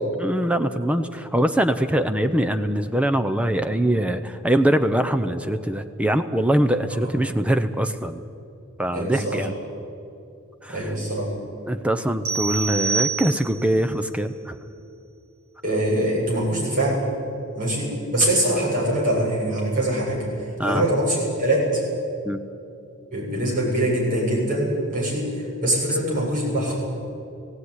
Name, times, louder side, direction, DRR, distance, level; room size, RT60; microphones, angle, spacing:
voice 1, 0.2-8.2 8.8-9.5 10.6-10.9 11.7-14.6 20.6-20.8 22.2-22.4, right 1 dB, 5° right, 9 dB, 0.6 m, -23 dB
voice 2, 8.9-9.5 10.7-11.3 15.6-17.1 17.5-20.3 20.6-21.8 23.1-26.7, right 1 dB, 40° right, -5 dB, 7.6 m, -23 dB
sound 1, 12.2-13.8, right 5 dB, 75° right, 1.9 m, -26 dB
18.5 x 16.5 x 9.7 m, 2.6 s
head